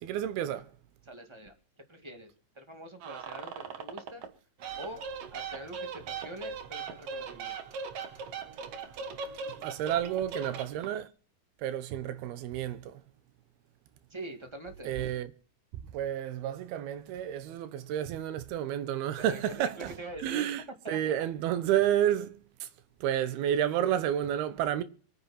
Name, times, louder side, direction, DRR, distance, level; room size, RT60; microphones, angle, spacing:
voice 1, 0.0-0.7 9.6-11.1 11.6-13.0 14.9-15.3 15.9-19.9 20.2-20.6 20.9-22.7 23.0-24.8, right 11 dB, 85° right, 2.9 m, -30 dB
voice 2, 1.0-1.5 1.9-4.3 4.8-5.0 5.3-7.6 14.1-15.1 19.1-20.5 20.8-21.3, right 1 dB, 15° right, 1.0 m, -44 dB
sound 1, 3.0-4.3 4.6-11.0, right 5 dB, 60° right, 1.6 m, -40 dB
24.0 x 9.6 x 4.3 m
omnidirectional pair, 4.4 m